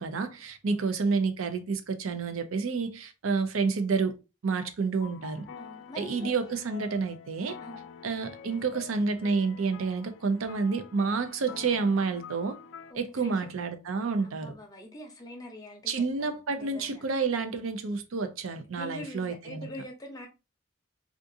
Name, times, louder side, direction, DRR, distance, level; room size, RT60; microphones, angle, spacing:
voice 1, 0.0-4.1 4.4-5.5 6.0-7.6 8.0-12.6 12.9-14.5 15.9-19.7, right 4 dB, 85° right, 0.5 m, -29 dB
sound 1, 5.0-12.9, left 7 dB, 65° left, 0.4 m, -47 dB
voice 2, 5.6-6.3 7.6-7.8 12.9-13.5 14.2-17.0 18.8-20.3, left 1 dB, 20° left, 0.6 m, -44 dB
3.6 x 2.4 x 2.6 m
head